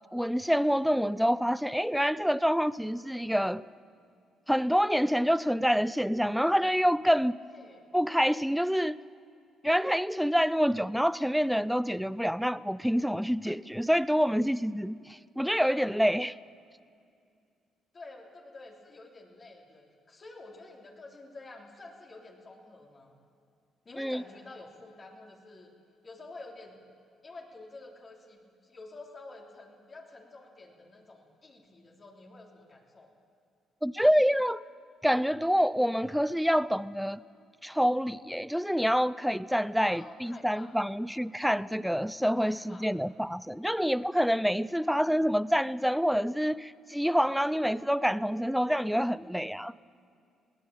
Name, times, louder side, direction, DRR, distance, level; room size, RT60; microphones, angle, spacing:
voice 1, 0.1-3.6 4.5-7.4 7.9-9.0 9.6-16.3 24.0-24.2 33.8-34.6 35.0-37.2 37.6-49.7, equal, ahead, 0.5 m, -27 dB
voice 2, 7.4-7.8 15.5-16.2 17.9-23.2 23.8-25.7 26.0-26.8 27.2-33.1 39.8-40.7 42.3-42.9 44.7-45.2 49.2-49.3, left 2 dB, 35° left, 3.5 m, -49 dB
21.0 x 17.0 x 8.8 m
cardioid pair, 85°, 0 cm